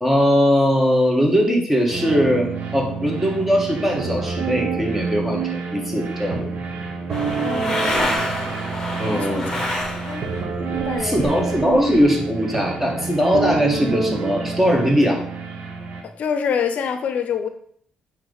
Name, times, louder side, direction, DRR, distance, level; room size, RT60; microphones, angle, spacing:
voice 1, 0.0-6.5 9.0-9.5 11.0-15.2, equal, 10° right, 1 dB, 1.8 m, -20 dB
sound 1, 1.9-16.0, right 4 dB, 70° right, 1.3 m, -28 dB
sound 2, 7.1-10.4 10.7-12.0, left 1 dB, 20° left, 1.6 m, -27 dB
voice 2, 7.4-7.9 9.1-9.5 10.1-10.3 10.7-11.7 16.0-17.5, left 6 dB, 65° left, 8 dB, 0.6 m, -26 dB
8.8 x 3.3 x 4.1 m, 0.62 s
cardioid pair, 75°, 3 cm